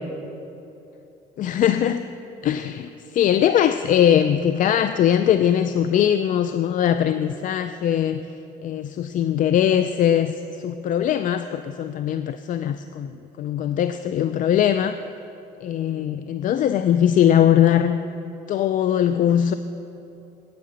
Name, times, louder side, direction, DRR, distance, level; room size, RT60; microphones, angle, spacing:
voice 1, 1.4-2.0 2.4-8.2 8.6-10.3 10.6-15.0 15.6-18.0 18.5-19.5, left 10 dB, 50° left, 11 dB, 0.4 m, -21 dB
9.3 x 8.5 x 7.8 m, 2.9 s
cardioid pair, 110°, 17 cm